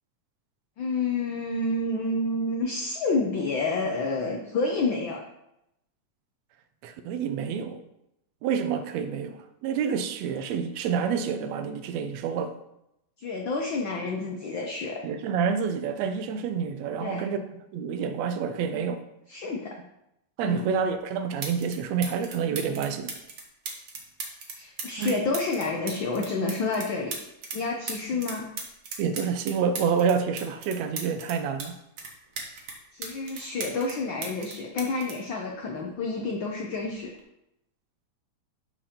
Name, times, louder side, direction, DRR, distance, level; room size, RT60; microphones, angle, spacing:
voice 1, 0.8-5.2 13.2-15.0 17.0-17.2 19.3-19.7 20.4-20.7 24.6-27.2 27.5-28.5 32.9-37.1, left 3 dB, 65° left, 1.2 m, -29 dB
voice 2, 6.8-7.8 8.4-12.5 15.0-19.0 20.4-23.1 25.0-25.3 29.0-31.8, right 6 dB, 75° right, 1.9 m, -28 dB
sound 1, 20.9-21.0 21.4-21.8 22.0-27.6 27.9-31.7 32.0-34.0 34.2-36.1 37.0-37.2, right 4 dB, 55° right, 2.3 m, -37 dB
13.0 x 4.7 x 5.2 m
omnidirectional pair, 3.4 m